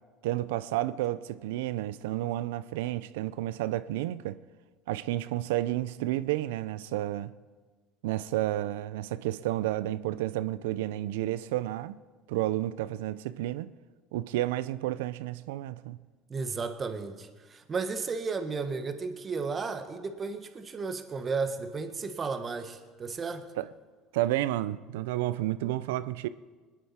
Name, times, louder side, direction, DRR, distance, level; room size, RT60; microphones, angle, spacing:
voice 1, 0.2-4.4 4.9-7.3 8.0-12.0 12.3-13.7 14.1-16.0 23.6-23.7 24.1-26.3, right 15 dB, 85° right, 0.5 m, -31 dB
voice 2, 16.3-23.5, right 4 dB, 30° right, 1.4 m, -34 dB
21.0 x 10.5 x 4.4 m
supercardioid pair, 95°, 0 cm